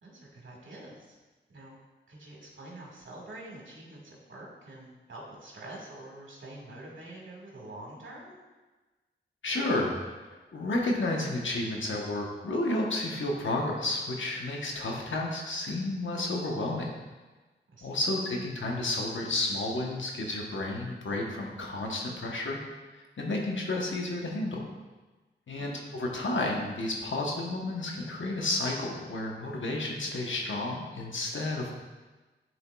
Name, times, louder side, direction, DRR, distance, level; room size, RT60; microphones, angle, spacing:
voice 1, 0.0-1.2 1.5-1.8 2.1-8.4 17.7-18.0 25.5-25.7, right 1 dB, 80° right, -3 dB, 1.8 m, -46 dB
voice 2, 9.4-9.9 10.2-16.9 17.8-22.6 23.2-24.7 25.5-31.7, left 2 dB, 80° left, 0 dB, 1.0 m, -31 dB
10.5 x 4.2 x 2.3 m, 1.2 s
cardioid pair, 50°, 20 cm